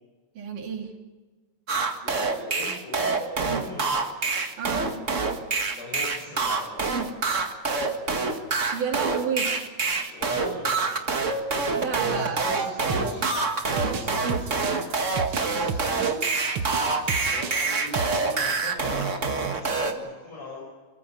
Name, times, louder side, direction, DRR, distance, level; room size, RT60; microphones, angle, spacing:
voice 1, 0.4-0.9 4.6-4.9 8.7-9.6 11.8-12.6, right 7 dB, 85° right, 3 dB, 4.2 m, -30 dB
sound 1, 1.7-19.9, right 4 dB, 30° right, 1.6 m, -26 dB
voice 2, 2.0-4.0 5.7-6.8 10.0-11.3 11.6-16.2 16.6-20.6, left 2 dB, 80° left, -3 dB, 8.0 m, -41 dB
sound 2, 12.9-18.4, right 6 dB, 60° right, 1.6 m, -32 dB
27.0 x 14.5 x 9.5 m, 1.4 s
omnidirectional pair, 3.5 m